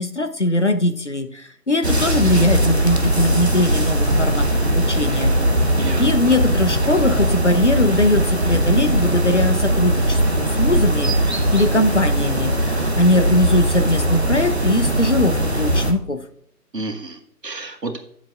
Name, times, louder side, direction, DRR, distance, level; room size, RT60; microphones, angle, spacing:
voice 1, 0.0-5.7 6.0-16.2, left 2 dB, 45° left, 9 dB, 0.8 m, -21 dB
sound 1, 1.8-15.9, right 1 dB, 40° right, 0.8 m, -19 dB
voice 2, 5.8-6.4 16.7-18.0, right 3 dB, 75° right, 5 dB, 1.6 m, -31 dB
15.0 x 7.4 x 2.4 m, 0.66 s
figure-of-eight pair, 165°, 49 cm